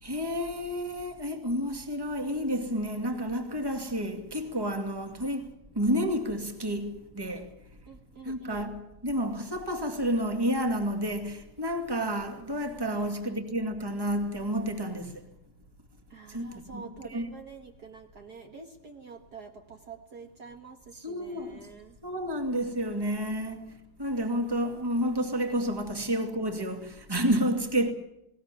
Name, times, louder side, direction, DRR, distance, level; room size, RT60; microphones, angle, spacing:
voice 1, 0.0-7.5 8.2-15.2 16.3-17.3 21.0-21.6 22.0-27.9, equal, 10° right, 2.3 m, -30 dB
voice 2, 7.9-8.7 12.9-13.1 16.1-22.0, right 5 dB, 50° right, 2.0 m, -47 dB
20.0 x 18.5 x 9.9 m
omnidirectional pair, 2.4 m